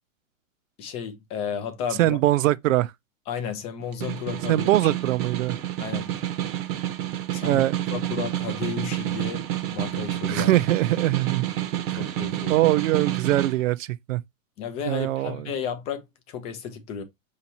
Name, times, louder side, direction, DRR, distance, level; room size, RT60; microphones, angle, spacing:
voice 1, 0.8-2.2 3.3-4.9 5.8-6.1 7.3-7.6 7.9-9.4 9.7-10.5 12.0-12.6 14.6-17.0, left 7 dB, 15° left, 0.4 m, -33 dB
voice 2, 2.0-2.9 4.5-5.6 7.5-7.8 10.3-11.4 11.9-12.0 12.5-14.2 14.9-15.5, right 15 dB, 70° right, 0.6 m, -22 dB
Snare drum, 3.8-13.6, right 12 dB, 45° right, 0.8 m, -29 dB
5.8 x 2.9 x 2.8 m
hypercardioid pair, 135°, 40 cm